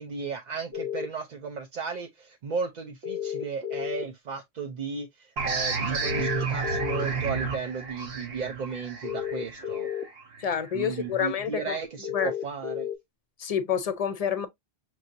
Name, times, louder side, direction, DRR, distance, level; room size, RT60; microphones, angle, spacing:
voice 1, 0.0-9.9 10.7-12.9, right 5 dB, 50° right, 0.6 m, -35 dB
sound 1, 0.7-1.1 3.0-4.0 6.0-7.0 9.0-10.0 12.0-12.9, left 10 dB, 90° right, 1.4 m, -32 dB
sound 2, 5.4-10.7, right 5 dB, 70° right, 1.0 m, -31 dB
voice 2, 10.4-11.8 12.1-12.3 13.4-14.5, left 8 dB, 45° left, 0.6 m, -28 dB
6.0 x 2.7 x 2.6 m
omnidirectional pair, 1.1 m